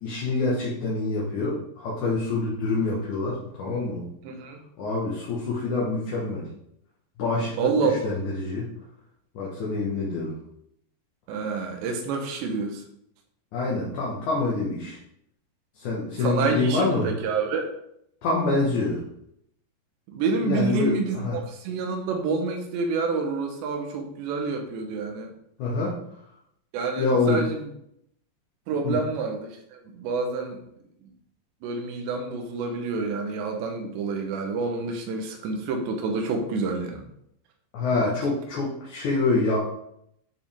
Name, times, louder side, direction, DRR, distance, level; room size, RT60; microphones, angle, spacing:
voice 1, 0.0-4.1 4.8-6.4 7.2-7.5 8.0-8.7 9.4-10.3 13.5-15.0 15.8-17.1 18.2-19.0 20.4-20.9 21.2-21.4 25.6-25.9 27.0-27.4 28.8-29.0 37.7-39.6, left 3 dB, 60° left, -6 dB, 2.3 m, -26 dB
voice 2, 4.2-4.6 7.6-7.9 11.3-12.8 16.2-17.7 20.1-25.3 26.7-27.7 28.7-30.6 31.0-31.1 31.6-37.1, right 4 dB, 80° right, 4 dB, 3.3 m, -28 dB
10.5 x 5.4 x 3.5 m, 0.74 s
omnidirectional pair, 5.1 m